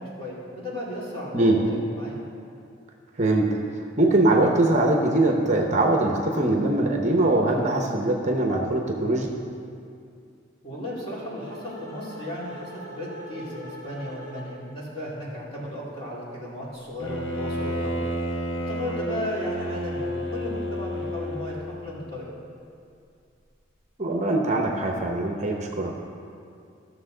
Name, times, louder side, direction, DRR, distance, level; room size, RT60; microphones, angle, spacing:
voice 1, 0.0-2.2 10.6-18.0 18.7-22.3, left 1 dB, 25° left, -6 dB, 2.4 m, -35 dB
voice 2, 3.2-3.6 4.0-9.3 24.0-25.9, right 2 dB, 35° right, 1 dB, 0.8 m, -22 dB
sound 1, 10.6-14.8, equal, 55° left, 2.5 m, -43 dB
Bowed string instrument, 17.0-21.9, equal, 70° left, 1.3 m, -30 dB
15.5 x 6.6 x 3.8 m, 2.4 s
head